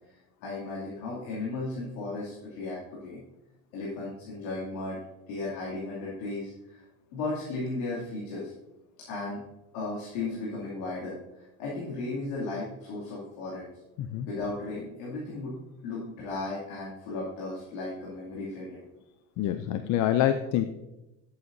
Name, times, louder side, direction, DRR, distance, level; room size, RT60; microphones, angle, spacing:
voice 1, 0.4-3.2 3.7-5.0 5.3-6.8 7.1-8.5 9.1-9.4 9.7-13.6 14.3-15.6 15.8-18.8, left 3 dB, 85° left, -6 dB, 2.6 m, -35 dB
voice 2, 19.4-20.7, left 11 dB, 60° left, 10 dB, 0.6 m, -26 dB
11.0 x 8.0 x 2.7 m, 0.97 s
supercardioid pair, 100°, 35 cm